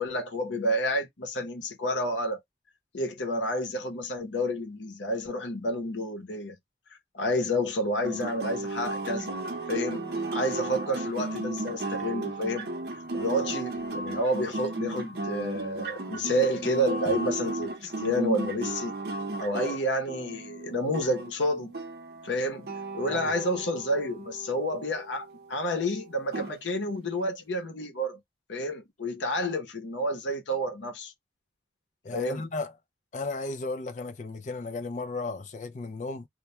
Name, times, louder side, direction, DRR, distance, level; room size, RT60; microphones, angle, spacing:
voice 1, 0.0-2.4 2.9-6.6 7.1-9.4 9.7-12.7 13.1-18.9 19.4-21.7 22.2-28.2 28.5-31.1 32.1-32.5, equal, 90° left, 0.8 m, -30 dB
sound 1, 8.0-25.4 26.3-26.6, right 2 dB, 60° right, 0.6 m, -35 dB
voice 2, 32.0-32.7 33.1-36.3, left 3 dB, 40° left, 0.4 m, -35 dB
2.2 x 2.2 x 2.9 m
head